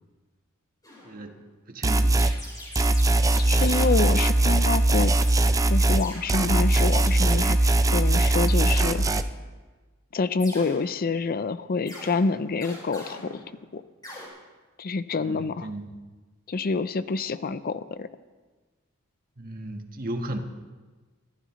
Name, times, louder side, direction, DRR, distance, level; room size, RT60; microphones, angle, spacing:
sound 1, 0.8-1.4 2.2-4.5 5.2-5.4 5.9-6.3 7.0-7.8 8.5-9.4 10.4-11.3 11.9-13.8 14.0-14.3, left 1 dB, 20° left, 6.2 m, -43 dB
voice 1, 1.0-1.4 1.7-2.2 15.2-16.0 19.4-20.4, right 1 dB, 45° right, 4 dB, 1.4 m, -35 dB
sound 2, 1.8-2.4 2.8-6.0 6.3-9.2, right 2 dB, 15° right, 0.5 m, -21 dB
voice 2, 3.4-5.1 5.7-9.0 10.1-13.4 13.7-13.8 14.8-15.7 16.5-18.1, left 4 dB, 45° left, 13 dB, 0.5 m, -27 dB
24.5 x 15.0 x 3.1 m, 1.3 s
head